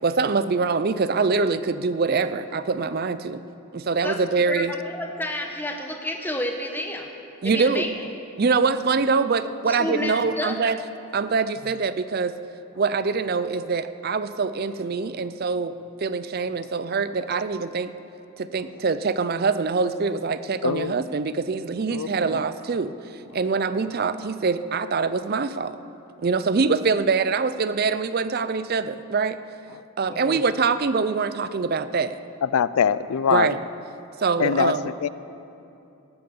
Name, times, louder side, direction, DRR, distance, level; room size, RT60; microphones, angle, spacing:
voice 1, 0.0-3.4 3.7-4.7 7.4-7.8 8.4-10.8 11.1-12.3 12.8-15.7 16.0-17.9 18.4-25.8 26.2-29.4 30.0-32.1 33.3-33.6 34.2-34.9, right 4 dB, 45° right, 13 dB, 0.4 m, -24 dB
voice 2, 4.5-7.1 7.4-8.0 9.7-10.8 30.1-30.4, left 1 dB, 10° left, 3 dB, 1.0 m, -30 dB
voice 3, 20.6-21.0 21.9-22.4 32.4-33.5 34.4-34.7 35.0-35.1, left 7 dB, 75° left, 17 dB, 0.4 m, -23 dB
17.5 x 9.0 x 7.0 m, 2.8 s
head